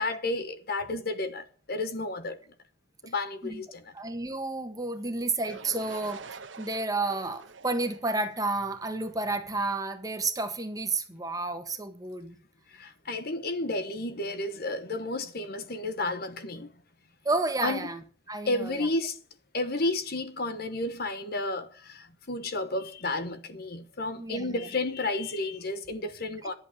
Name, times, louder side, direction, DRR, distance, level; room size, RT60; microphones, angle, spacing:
voice 1, 0.0-2.4 3.0-3.8 12.7-16.7 17.6-17.8 18.5-19.2 19.5-26.5, left 2 dB, 55° left, 1.2 m, -32 dB
voice 2, 3.9-12.4 17.2-18.0 18.3-18.9 24.2-24.7, right 3 dB, 20° right, 1.4 m, -31 dB
sound 1, 5.4-9.3, right 4 dB, 80° right, 1.2 m, -46 dB
11.5 x 8.0 x 8.6 m
head